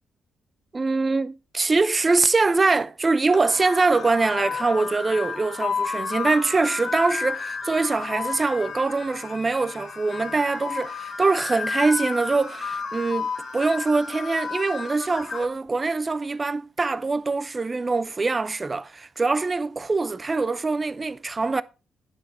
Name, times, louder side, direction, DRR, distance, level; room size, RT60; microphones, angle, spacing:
voice 1, 0.7-21.6, right 3 dB, 25° right, 0.5 m, -23 dB
sound 1, 3.3-15.5, left 5 dB, 50° left, 2.0 m, -32 dB
9.7 x 5.8 x 4.2 m
cardioid pair, 90°, 0 cm